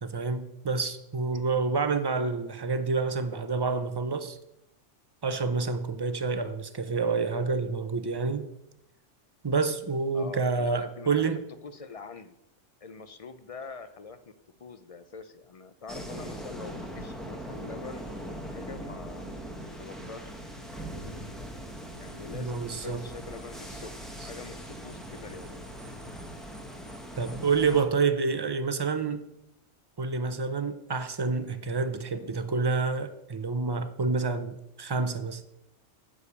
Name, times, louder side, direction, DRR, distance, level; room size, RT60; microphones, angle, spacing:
voice 1, 0.0-4.4 5.2-8.5 9.4-11.4 22.3-23.0 27.2-29.2 30.0-35.5, right 4 dB, 30° right, 0.4 m, -28 dB
voice 2, 10.1-12.3 12.8-14.3 14.6-19.2 19.8-20.3 20.8-21.2 22.0-23.9 24.2-25.6 28.3-28.4, left 4 dB, 45° left, 0.4 m, -44 dB
sound 1, 15.9-27.8, equal, ahead, 1.1 m, -41 dB
9.9 x 5.0 x 6.9 m
omnidirectional pair, 1.2 m